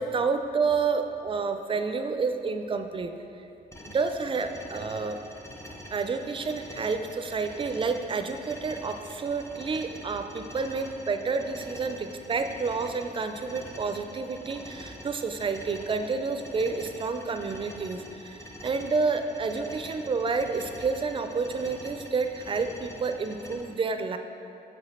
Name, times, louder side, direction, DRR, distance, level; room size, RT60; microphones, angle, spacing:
voice 1, 0.0-3.1 3.8-5.2 5.9-24.2, right 4 dB, 30° right, 8 dB, 0.4 m, -29 dB
sound 1, 3.7-23.6, equal, 15° left, 0.7 m, -45 dB
5.9 x 5.0 x 4.2 m, 2.8 s
cardioid pair, 90°, 17 cm